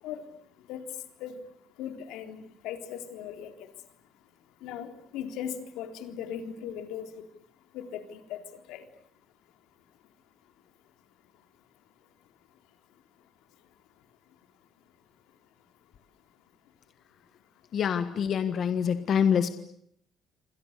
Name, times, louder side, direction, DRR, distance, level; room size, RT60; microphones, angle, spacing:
voice 1, 1.8-3.5 4.6-7.2 7.7-8.4 8.7-8.8, left 9 dB, 85° left, 3.8 m, -38 dB
voice 2, 17.7-19.5, left 7 dB, 40° left, 1.5 m, -25 dB
28.0 x 26.5 x 6.8 m
cardioid pair, 170°, 0 cm